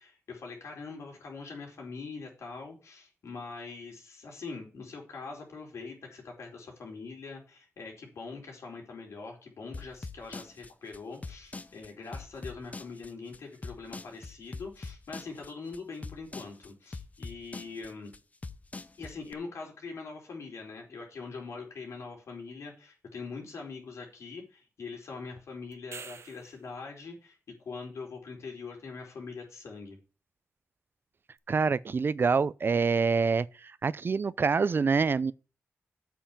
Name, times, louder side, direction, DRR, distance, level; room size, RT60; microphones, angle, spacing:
voice 1, 0.0-18.1 19.0-30.0, left 4 dB, 80° left, 4.4 m, -43 dB
sound 1, 9.7-19.3, left 3 dB, 30° left, 0.8 m, -42 dB
sound 2, 25.7-26.7 31.4-31.5, right 6 dB, 65° right, 0.9 m, -46 dB
voice 2, 31.5-35.3, right 5 dB, 50° right, 0.5 m, -26 dB
8.5 x 5.7 x 7.5 m
wide cardioid pair, 90°, 5 cm